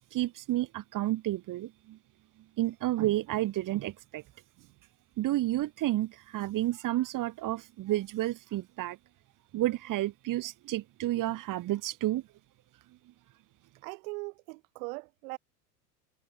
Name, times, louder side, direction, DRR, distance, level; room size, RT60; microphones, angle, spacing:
voice 1, 0.1-2.0 2.6-4.2 5.2-9.0 9.5-12.2, right 15 dB, 40° right, 3.1 m, -31 dB
voice 2, 13.8-15.4, right 29 dB, 55° right, 2.6 m, -40 dB
hypercardioid pair, 90°, 49 cm